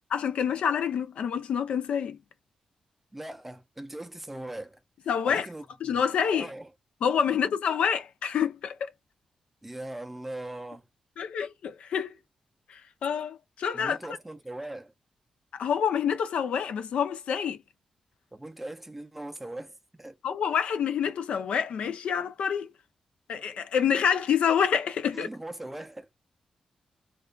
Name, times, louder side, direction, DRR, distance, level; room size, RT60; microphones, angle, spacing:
voice 1, 0.1-2.2 5.1-5.5 5.8-6.5 7.0-8.9 11.2-12.2 12.7-14.0 15.5-17.6 20.2-22.7 23.3-25.3, left 7 dB, 80° left, 0.4 m, -27 dB
voice 2, 3.1-4.8 5.2-6.0 6.3-6.7 9.6-10.9 13.7-14.9 18.3-20.2 25.1-26.2, right 1 dB, 10° right, 0.4 m, -40 dB
2.4 x 2.2 x 2.2 m
wide cardioid pair, 115°, 2 cm